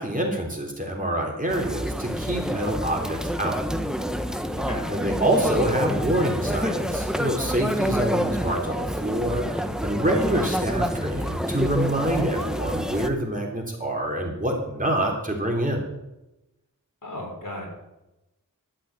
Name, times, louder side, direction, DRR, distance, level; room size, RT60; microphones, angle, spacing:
voice 1, 0.0-3.6 4.9-15.8, right 1 dB, 25° right, -1 dB, 3.4 m, -26 dB
sound 1, 1.5-13.1, equal, ahead, 1.1 m, -28 dB
voice 2, 17.0-17.7, left 1 dB, 70° left, -2 dB, 5.4 m, -34 dB
12.0 x 8.5 x 8.8 m, 0.94 s
wide cardioid pair, 60°, 34 cm